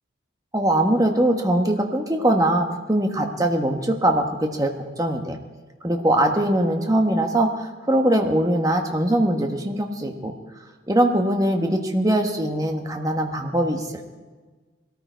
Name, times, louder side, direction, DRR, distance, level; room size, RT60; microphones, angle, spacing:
voice 1, 0.5-5.4 5.8-10.3 10.9-14.0, right 1 dB, 20° right, 3 dB, 1.3 m, -22 dB
21.0 x 13.5 x 4.6 m, 1.3 s
head